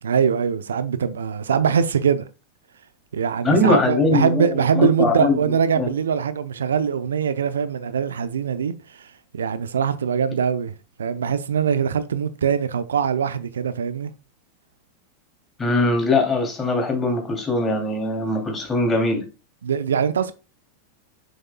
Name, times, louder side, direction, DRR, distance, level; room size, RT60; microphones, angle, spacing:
voice 1, 0.0-2.3 3.1-9.1 9.3-10.7 11.0-14.1 19.6-20.3, right 7 dB, 80° right, 0.5 m, -22 dB
voice 2, 3.4-5.4 5.8-5.9 15.6-19.3, left 2 dB, 20° left, 2.7 m, -21 dB
7.1 x 6.5 x 2.2 m
hypercardioid pair, 95°, 0 cm